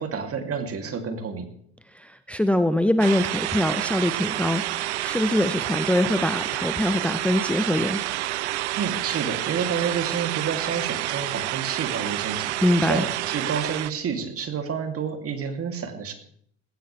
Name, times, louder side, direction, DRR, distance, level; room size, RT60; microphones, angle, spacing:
voice 1, 0.0-1.5 8.8-12.5 12.8-16.1, right 6 dB, 45° right, 5 dB, 3.1 m, -29 dB
voice 2, 1.9-8.0 12.6-13.1, left 1 dB, 5° left, 11 dB, 0.9 m, -23 dB
sound 1, 3.0-13.9, right 15 dB, 80° right, 0.6 m, -29 dB
19.5 x 16.5 x 3.5 m, 0.65 s
hypercardioid pair, 60°, 33 cm